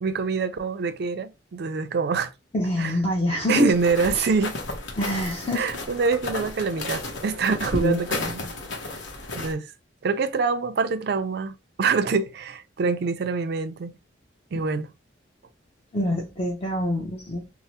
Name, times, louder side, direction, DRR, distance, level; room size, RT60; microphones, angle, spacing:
voice 1, 0.0-2.3 2.8-2.9 3.5-4.6 5.5-8.4 9.3-9.7 10.0-13.9 14.5-14.9, right 4 dB, 55° right, 0.4 m, -25 dB
voice 2, 2.5-3.7 4.1-4.3 5.0-5.7 7.8-8.0 9.3-9.5 15.9-17.5, left 1 dB, 30° left, 0.7 m, -25 dB
sound 1, 3.7-9.5, left 2 dB, 85° left, 0.8 m, -33 dB
3.2 x 2.0 x 2.8 m
head